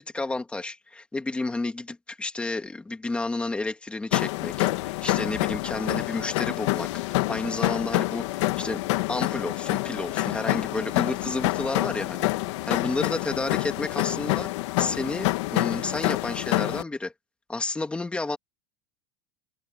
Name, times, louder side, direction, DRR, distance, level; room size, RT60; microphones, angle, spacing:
voice 1, 0.0-8.8 9.1-12.3 12.7-14.5 14.8-17.1 17.5-18.4, left 2 dB, 5° left, 2.1 m, -31 dB
sound 1, 4.1-16.8, left 20 dB, 65° left, 1.6 m, -27 dB
open air
supercardioid pair, 170°, 16 cm